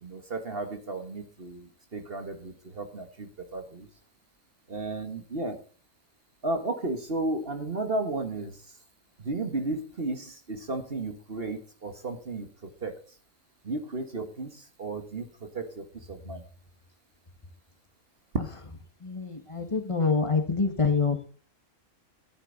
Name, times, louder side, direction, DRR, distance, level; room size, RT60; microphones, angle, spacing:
voice 1, 0.0-3.9 4.7-5.6 6.4-8.6 9.2-12.5 12.8-13.0 13.6-16.4, right 2 dB, 45° right, 6 dB, 1.8 m, -34 dB
voice 2, 19.0-21.2, left 4 dB, 25° left, 6 dB, 1.9 m, -26 dB
13.0 x 11.0 x 4.0 m, 0.38 s
omnidirectional pair, 1.4 m